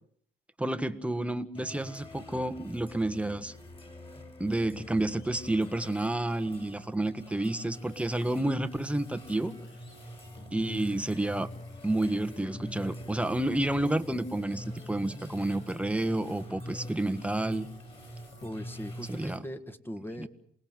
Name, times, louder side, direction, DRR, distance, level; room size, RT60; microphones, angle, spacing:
voice 1, 0.6-3.5 4.4-9.5 10.5-11.5 11.8-17.7 19.1-19.4 20.2-20.3, right 1 dB, 5° right, 10 dB, 1.5 m, -30 dB
sound 1, 1.5-19.4, left 1 dB, 25° left, 6.6 m, -49 dB
sound 2, 7.7-19.4, left 1 dB, 70° left, 6.4 m, -45 dB
voice 2, 18.4-20.3, equal, 10° left, 8 dB, 2.0 m, -39 dB
28.0 x 19.5 x 7.6 m, 0.65 s
cardioid pair, 90°, 20 cm